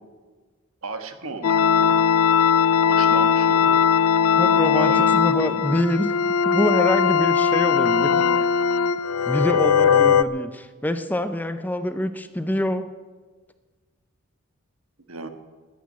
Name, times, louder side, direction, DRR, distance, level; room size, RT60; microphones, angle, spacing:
voice 1, 0.8-2.0 2.9-3.9 4.7-5.2 15.1-15.3, right 4 dB, 75° right, 7 dB, 1.5 m, -34 dB
sound 1, 1.4-10.2, left 7 dB, 85° left, 0.5 m, -19 dB
voice 2, 4.4-6.1 6.4-8.3 9.3-12.9, left 1 dB, 10° left, 10 dB, 0.6 m, -25 dB
12.0 x 11.0 x 9.4 m, 1.4 s
head